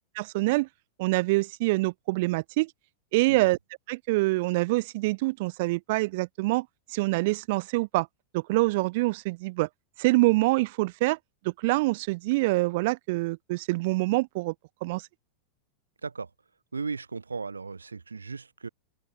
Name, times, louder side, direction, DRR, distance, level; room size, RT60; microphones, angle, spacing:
voice 1, 0.2-0.7 1.0-2.7 3.1-3.6 3.9-8.1 8.3-9.7 10.0-11.2 11.4-14.5 14.8-15.0, right 22 dB, 50° right, 3.0 m, -25 dB
voice 2, 16.7-18.7, right 4 dB, 75° right, 5.2 m, -36 dB
open air
figure-of-eight pair, 90°, 0 cm